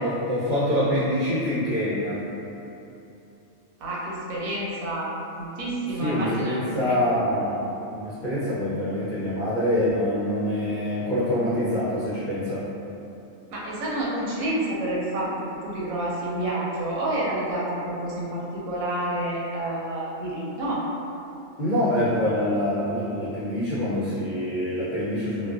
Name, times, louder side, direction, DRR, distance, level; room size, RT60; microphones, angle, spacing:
voice 1, 0.0-2.2 6.0-12.7 21.6-25.5, left 1 dB, 55° left, -13 dB, 0.5 m, -25 dB
voice 2, 3.8-7.0 13.5-20.8, right 1 dB, 85° right, -6 dB, 1.0 m, -29 dB
2.4 x 2.2 x 2.3 m, 2.8 s
omnidirectional pair, 1.4 m